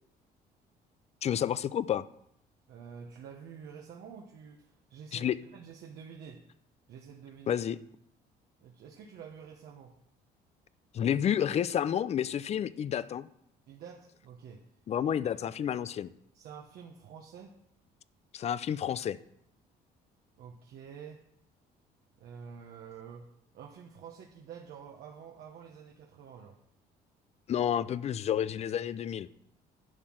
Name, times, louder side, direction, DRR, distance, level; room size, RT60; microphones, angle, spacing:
voice 1, 1.2-2.0 5.1-5.4 7.5-7.8 10.9-13.3 14.9-16.1 18.3-19.2 27.5-29.3, left 9 dB, 40° left, 17 dB, 0.5 m, -30 dB
voice 2, 2.7-6.4 6.9-7.6 8.6-10.0 13.7-14.6 15.0-15.4 16.3-17.6 20.4-21.2 22.2-23.3 23.5-26.6, right 7 dB, 70° right, 0 dB, 1.1 m, -48 dB
11.0 x 5.8 x 6.3 m, 0.74 s
cardioid pair, 110°, 17 cm